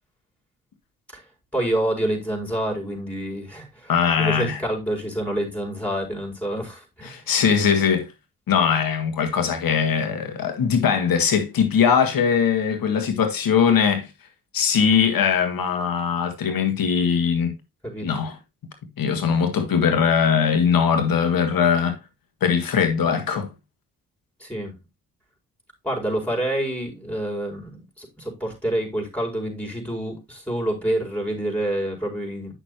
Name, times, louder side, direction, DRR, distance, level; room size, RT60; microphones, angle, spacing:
voice 1, 1.5-3.9 4.2-7.2 17.8-18.1 19.3-19.4 24.4-24.7 25.8-32.5, right 1 dB, 5° left, 4.4 m, -27 dB
voice 2, 3.9-4.6 7.0-8.1 8.5-14.1 14.5-17.5 18.0-18.4 19.0-22.0 22.4-23.5, left 7 dB, 60° left, 1.9 m, -21 dB
8.8 x 6.5 x 3.1 m
hypercardioid pair, 40°, 39 cm